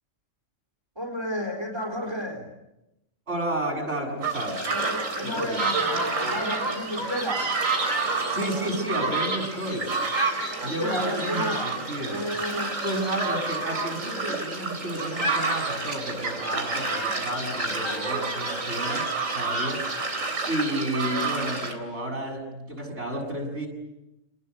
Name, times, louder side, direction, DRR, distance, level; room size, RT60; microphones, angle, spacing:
voice 1, 1.0-2.5 4.7-7.5 10.6-12.8, equal, 20° right, 1 dB, 4.1 m, -32 dB
voice 2, 3.3-4.6 5.2-5.6 8.3-9.9 10.6-12.2 12.8-19.8 20.5-23.7, right 1 dB, 60° right, 2 dB, 7.8 m, -31 dB
sound 1, 4.2-21.7, right 3 dB, 90° right, 4.1 m, -29 dB
28.5 x 20.0 x 9.7 m, 0.92 s
omnidirectional pair, 1.3 m